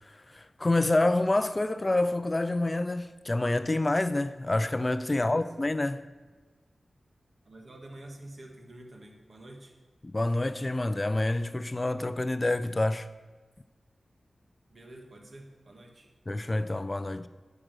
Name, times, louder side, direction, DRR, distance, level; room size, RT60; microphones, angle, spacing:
voice 1, 0.0-6.0 10.1-13.1 16.3-17.3, left 2 dB, 30° left, 0.4 m, -27 dB
voice 2, 5.1-5.5 7.4-9.7 14.7-16.1, right 1 dB, 55° right, 2.0 m, -48 dB
8.8 x 7.7 x 6.3 m
wide cardioid pair, 75°, 0 cm